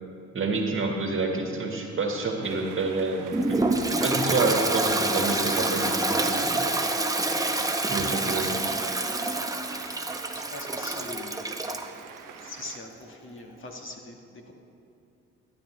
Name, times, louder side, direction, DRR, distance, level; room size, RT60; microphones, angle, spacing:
voice 1, 0.3-3.6 4.0-6.6 7.9-8.6, right 3 dB, 40° right, 2 dB, 1.7 m, -28 dB
sound 1, 2.4-12.8, right 8 dB, 80° right, 0.7 m, -46 dB
Toilet flush, 3.3-11.9, right 2 dB, 10° right, 0.8 m, -27 dB
Wind instrument woodwind instrument, 3.8-8.0, left 3 dB, 25° left, 1.0 m, -38 dB
voice 2, 10.3-11.9 12.3-14.5, left 2 dB, 40° left, 1 dB, 1.5 m, -43 dB
13.5 x 10.0 x 3.2 m, 2.6 s
supercardioid pair, 65°, 32 cm